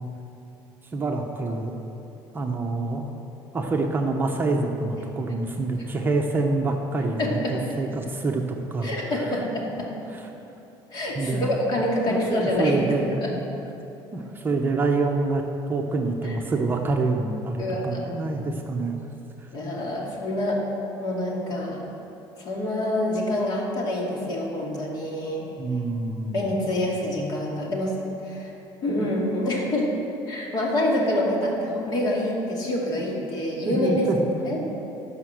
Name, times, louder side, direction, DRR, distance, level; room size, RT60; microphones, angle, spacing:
voice 1, 0.9-1.7 2.3-3.1 3.5-9.0 10.1-10.2 11.1-11.5 12.1-13.5 14.1-15.4 15.7-19.1 25.6-26.4 33.6-34.3, right 3 dB, 20° right, 2 dB, 0.8 m, -26 dB
voice 2, 7.2-7.5 8.8-9.9 10.9-12.8 13.2-13.3 16.2-16.4 17.6-18.1 19.5-20.6 21.0-21.8 22.4-25.5 26.3-27.9 28.2-28.5 28.8-29.9 30.3-34.0 34.4-34.6, left 1 dB, 45° left, -2 dB, 2.5 m, -26 dB
12.0 x 5.9 x 7.8 m, 3.0 s
cardioid pair, 130°, 9 cm